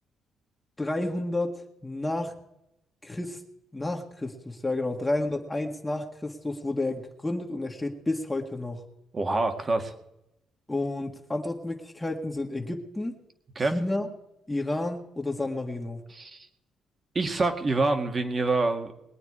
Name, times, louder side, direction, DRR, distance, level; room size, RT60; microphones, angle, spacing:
voice 1, 0.8-2.3 3.0-3.4 3.7-8.8 10.7-13.2 13.7-14.1 14.5-16.0, left 2 dB, 15° left, 1 dB, 1.7 m, -31 dB
voice 2, 9.1-9.9 13.6-13.8 16.1-16.5 17.1-18.9, right 3 dB, 35° right, 7 dB, 2.0 m, -26 dB
21.5 x 9.0 x 4.9 m, 0.86 s
cardioid pair, 90°, 0 cm